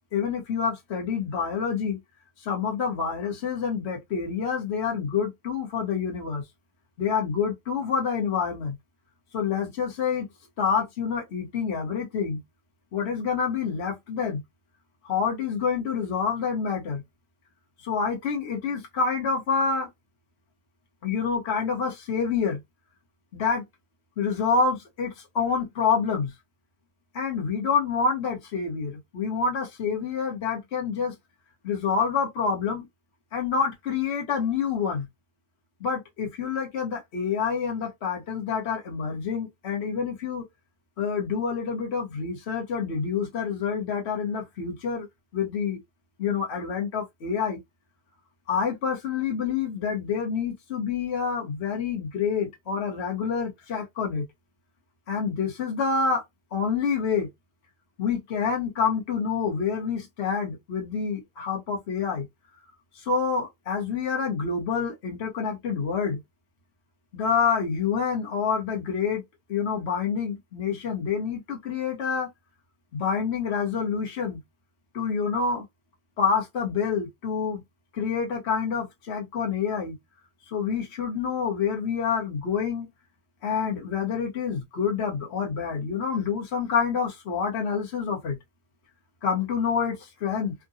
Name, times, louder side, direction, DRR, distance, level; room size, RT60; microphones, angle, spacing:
voice 1, 0.1-2.0 2.4-6.4 7.0-8.7 9.3-10.3 10.6-12.4 12.9-14.4 15.0-17.0 17.8-19.9 21.0-22.6 23.3-23.6 24.2-26.3 27.1-31.1 31.6-32.9 33.3-35.0 35.8-40.5 41.0-45.1 45.3-45.8 46.2-47.6 48.5-54.2 55.1-56.2 56.5-57.3 58.0-62.2 62.9-66.2 67.1-69.2 69.5-72.3 72.9-74.4 74.9-75.6 76.2-77.6 77.9-80.0 80.5-82.9 83.4-88.4 89.2-90.5, left 6 dB, 45° left, 1.2 m, -27 dB
3.7 x 2.2 x 2.6 m
omnidirectional pair, 1.6 m